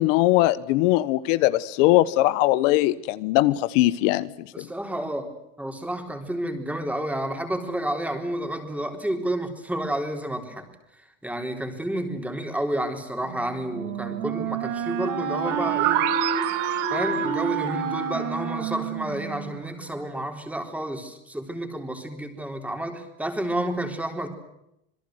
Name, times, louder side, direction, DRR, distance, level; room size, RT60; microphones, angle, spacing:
voice 1, 0.0-4.7, left 17 dB, 70° left, 15 dB, 1.2 m, -21 dB
voice 2, 4.5-10.7 11.0-16.0 16.9-24.3, right 1 dB, 5° right, 5 dB, 3.8 m, -30 dB
Wind instrument woodwind instrument, 13.2-20.1, right 7 dB, 75° right, 6.1 m, -29 dB
sound 1, 15.4-19.2, right 14 dB, 50° right, 2.0 m, -30 dB
27.5 x 22.0 x 7.9 m, 0.81 s
cardioid pair, 155°, 39 cm